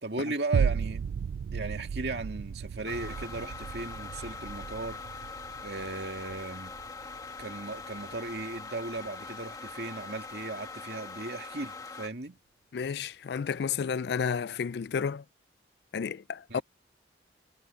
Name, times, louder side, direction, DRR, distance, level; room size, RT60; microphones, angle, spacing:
voice 1, 0.0-1.0 1.5-5.0 5.6-6.7 7.4-12.4 16.5-16.6, right 2 dB, 65° right, 2.4 m, -36 dB
sound 1, 0.5-9.1 9.6-9.7, right 6 dB, 80° right, 0.3 m, -35 dB
sound 2, 2.9-12.1, left 4 dB, 20° left, 1.4 m, -43 dB
voice 2, 12.7-15.2 15.9-16.6, left 6 dB, 65° left, 0.4 m, -31 dB
head